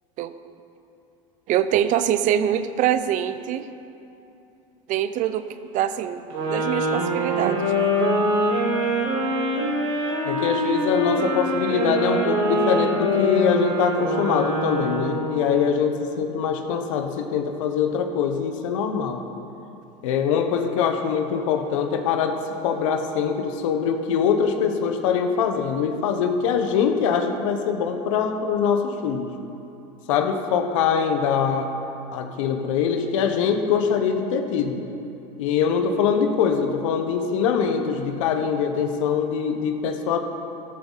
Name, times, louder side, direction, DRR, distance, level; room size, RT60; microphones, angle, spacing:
voice 1, 1.5-3.7 4.9-8.0, right 10 dB, 50° right, 12 dB, 0.7 m, -24 dB
sound 1, 6.3-15.5, equal, 75° right, 3.6 m, -24 dB
voice 2, 10.2-19.2 20.0-29.3 30.1-31.7 32.1-34.8 35.4-40.2, left 6 dB, 80° left, 6 dB, 1.2 m, -23 dB
13.5 x 13.0 x 4.1 m, 2.8 s
supercardioid pair, 105°, 16 cm